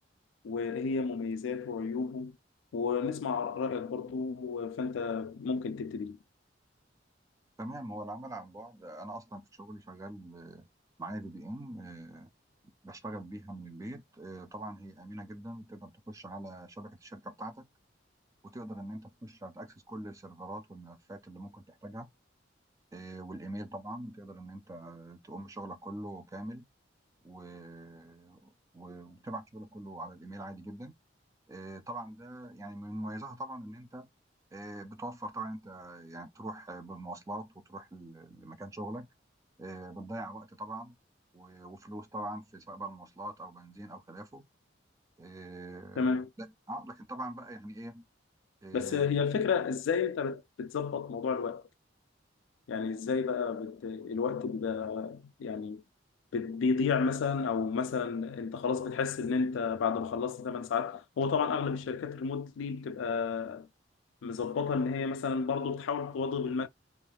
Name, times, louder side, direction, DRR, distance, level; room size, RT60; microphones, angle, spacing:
voice 1, 0.4-2.4 2.7-6.2 46.0-46.3 48.7-51.7 52.7-55.8 56.3-63.7 64.2-66.7, left 5 dB, 85° left, 0.3 m, -32 dB
voice 2, 7.6-10.7 11.0-12.3 12.8-17.7 18.4-22.1 22.9-26.7 27.2-30.9 31.5-34.1 34.5-39.1 39.6-41.0 41.3-44.5 45.2-48.0 48.6-49.2, right 1 dB, 15° right, 0.3 m, -43 dB
2.3 x 2.3 x 3.3 m
head